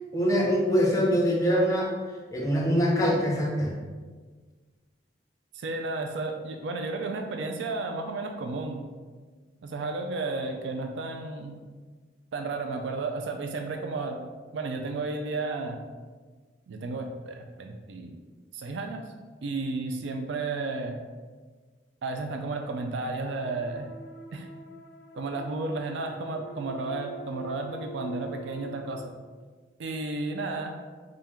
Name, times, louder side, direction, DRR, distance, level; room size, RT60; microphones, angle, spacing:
voice 1, 0.1-1.9 2.3-3.7, equal, 20° left, -1 dB, 0.6 m, -23 dB
voice 2, 5.5-8.9 9.6-11.6 12.3-14.2 14.5-15.8 16.7-18.2 18.5-19.0 19.4-20.9 22.0-23.9 24.3-24.5 25.1-29.2 29.8-30.8, right 3 dB, 75° right, 5 dB, 0.4 m, -33 dB
sound 1, 23.5-28.9, right 2 dB, 60° left, 0.4 m, -45 dB
4.2 x 2.5 x 3.6 m, 1.4 s
head